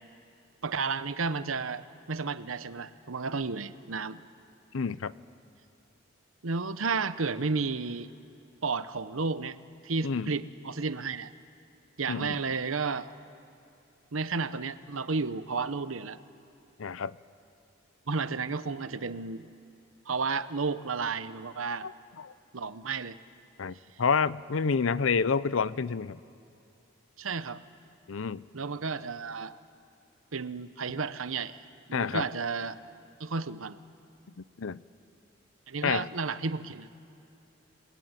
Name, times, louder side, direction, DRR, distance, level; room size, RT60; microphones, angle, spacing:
voice 1, 0.6-4.2 6.4-8.1 8.6-9.6 9.8-11.3 12.0-13.1 14.1-16.2 18.1-19.5 20.1-21.9 22.5-23.2 27.2-27.6 28.5-29.6 30.3-31.6 31.9-32.8 33.2-33.8 35.7-36.9, right 4 dB, 90° right, 12 dB, 1.0 m, -32 dB
voice 2, 4.7-5.1 10.0-10.3 12.1-12.4 16.8-17.1 21.8-21.9 22.2-22.3 23.6-26.2 28.1-28.4 31.9-32.2 34.4-34.8 35.8-36.1, left 5 dB, 80° left, 18 dB, 0.6 m, -29 dB
29.5 x 20.5 x 9.2 m, 2.7 s
head